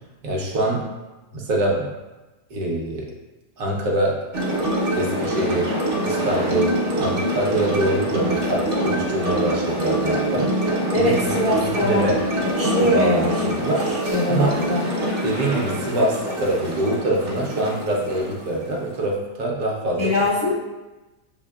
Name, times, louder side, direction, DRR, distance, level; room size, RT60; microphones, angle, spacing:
voice 1, 0.2-0.8 1.3-1.9 2.5-3.1 3.6-4.2 4.9-10.5 10.9-11.4 11.8-12.2 12.8-13.8 14.3-14.6 15.2-20.1, right 1 dB, 65° right, -1 dB, 1.1 m, -24 dB
sound 1, 4.3-19.1, right 1 dB, 45° right, 0.9 m, -25 dB
voice 2, 10.9-12.1 12.4-14.9 20.0-20.6, left 2 dB, 70° left, -6 dB, 0.3 m, -23 dB
7.1 x 2.7 x 2.3 m, 1.1 s
omnidirectional pair, 1.7 m